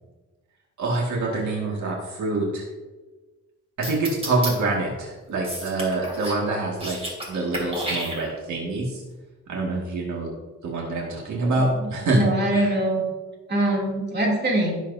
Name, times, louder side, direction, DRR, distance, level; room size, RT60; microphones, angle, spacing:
voice 1, 0.8-2.6 3.8-7.0 7.3-9.0 9.5-10.3 10.6-12.2 12.5-12.8, right 2 dB, 70° right, -2 dB, 2.1 m, -26 dB
sound 1, 3.8-4.5 5.4-6.4 6.7-7.3 7.5-8.6, right 1 dB, 20° right, 2.6 m, -31 dB
voice 2, 12.1-13.0 13.5-14.8, right 1 dB, 35° right, -3 dB, 2.9 m, -23 dB
16.5 x 7.3 x 2.8 m, 1.2 s
cardioid pair, 150°, 30 cm